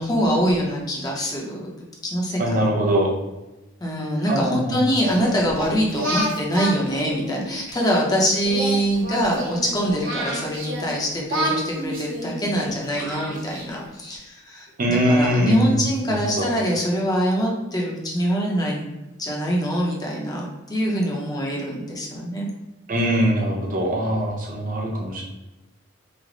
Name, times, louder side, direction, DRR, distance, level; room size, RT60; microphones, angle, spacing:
voice 1, 0.0-1.7 2.0-2.7 3.8-18.9 19.2-22.5, equal, 20° left, -2 dB, 0.6 m, -24 dB
voice 2, 2.4-3.1 4.3-4.8 14.8-15.8 16.0-16.5 22.9-25.2, equal, 45° right, -1 dB, 0.7 m, -22 dB
Singing, 5.0-8.0 8.4-10.9 11.3-13.9, right 1 dB, 70° right, 0.9 m, -29 dB
3.2 x 2.0 x 3.7 m, 1.0 s
head